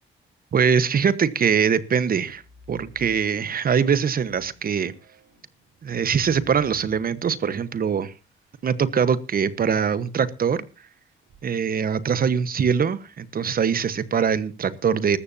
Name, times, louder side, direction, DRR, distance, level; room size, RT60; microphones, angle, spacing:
voice 1, 0.5-2.4 2.7-4.9 5.8-8.1 8.6-10.6 11.4-15.2, right 7 dB, 50° right, 1.2 m, -22 dB
sound 1, 2.2-3.6 4.0-9.6 11.1-11.4, right 1 dB, 85° right, 6.8 m, -52 dB
19.5 x 14.0 x 2.8 m
cardioid pair, 90°, 20 cm